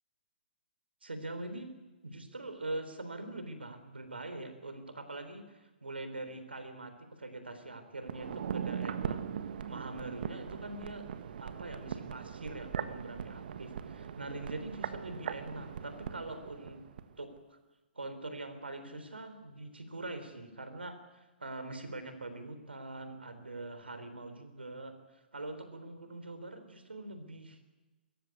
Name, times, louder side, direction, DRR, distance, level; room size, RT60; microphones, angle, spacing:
voice 1, 1.0-1.7 2.0-9.2 9.7-11.1 11.4-16.8 17.2-17.6 18.0-25.0 25.3-27.6, right 2 dB, 85° right, 9 dB, 3.7 m, -43 dB
sound 1, 8.0-17.1 17.4-17.5, right 7 dB, 60° right, 1.5 m, -40 dB
23.0 x 14.5 x 9.6 m, 1.1 s
figure-of-eight pair, 125°, 6 cm